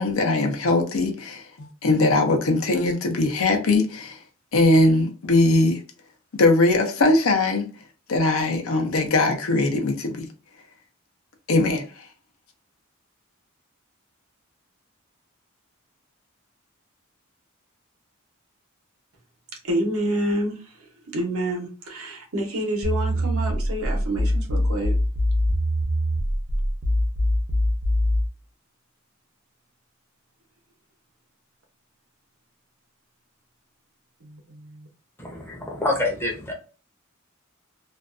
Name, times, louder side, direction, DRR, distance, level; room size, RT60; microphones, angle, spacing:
voice 1, 0.0-4.2 4.5-5.8 6.3-7.7 8.1-10.3 11.5-11.9, left 2 dB, 75° left, 0.6 m, -20 dB
voice 2, 19.6-20.9 21.1-24.9 34.2-34.9, right 1 dB, 90° right, 0.9 m, -28 dB
sound 1, 22.8-28.3, equal, 55° right, 0.7 m, -23 dB
voice 3, 35.2-36.5, left 2 dB, 10° left, 0.6 m, -27 dB
2.5 x 2.3 x 2.4 m
head